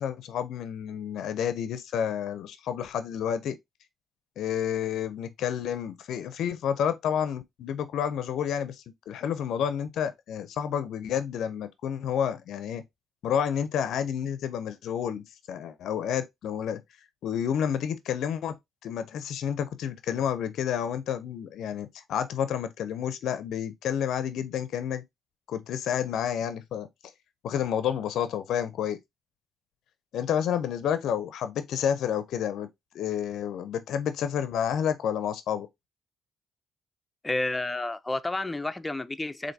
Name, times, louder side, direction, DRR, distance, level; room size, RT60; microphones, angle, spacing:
voice 1, 0.0-3.6 4.4-12.8 13.2-16.8 17.2-18.6 18.8-25.0 25.5-26.9 27.4-29.0 30.1-32.7 32.9-35.7, left 8 dB, 75° left, 0.4 m, -30 dB
voice 2, 37.2-39.5, left 2 dB, 15° left, 0.4 m, -30 dB
4.4 x 2.6 x 2.6 m
cardioid pair, 90°, 0 cm